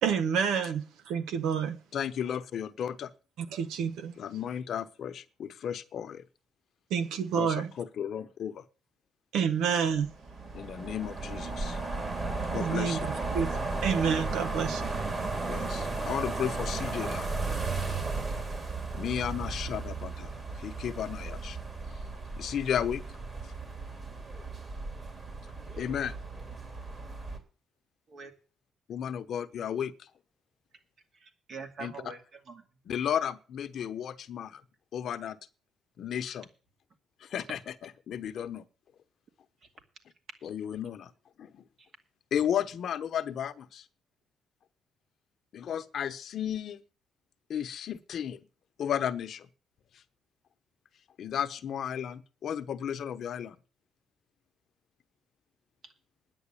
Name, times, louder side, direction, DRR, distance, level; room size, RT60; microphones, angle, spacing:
voice 1, 0.0-1.8 3.4-4.1 6.9-7.7 9.3-10.1 12.5-13.6 13.8-14.8, right 7 dB, 90° right, 1.0 m, -29 dB
voice 2, 1.9-3.1 4.2-6.2 7.4-8.6 10.5-11.8 12.5-13.1 15.5-17.3 18.9-21.6 21.9-22.0 22.4-23.0 25.7-26.2 28.9-30.1 31.8-31.9 32.9-34.6 34.9-35.4 36.0-36.5 37.2-38.6 40.4-41.1 41.4-41.6 42.3-43.8 45.5-46.8 47.5-48.4 48.8-49.5 51.2-53.6, left 9 dB, 65° left, 0.9 m, -34 dB
sound 1, 10.0-27.4, right 3 dB, 35° right, 3.3 m, -35 dB
voice 3, 31.1-32.6 39.6-39.7 41.8-41.9 55.8-55.9, right 5 dB, 60° right, 2.4 m, -45 dB
10.0 x 7.8 x 8.6 m
cardioid pair, 90°, 0 cm